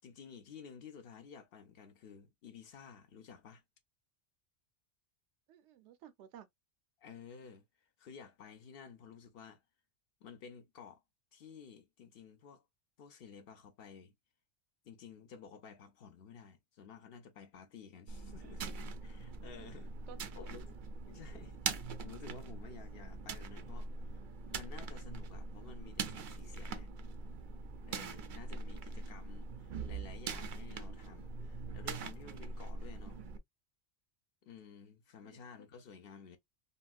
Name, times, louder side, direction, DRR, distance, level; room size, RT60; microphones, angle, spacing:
voice 1, 0.0-3.6 7.0-7.6 8.0-9.6 10.2-11.0 11.3-12.6 13.0-14.1 14.8-18.6 19.0-19.9 20.4-20.7 21.1-23.9 24.5-26.9 27.9-33.2 34.4-36.4, left 6 dB, 65° left, 0.7 m, -53 dB
voice 2, 5.5-6.5 19.6-20.5 28.6-28.9 35.2-35.5, right 10 dB, 80° right, 0.9 m, -56 dB
sound 1, 18.1-33.4, right 4 dB, 55° right, 0.6 m, -42 dB
3.5 x 2.1 x 2.4 m
omnidirectional pair, 1.2 m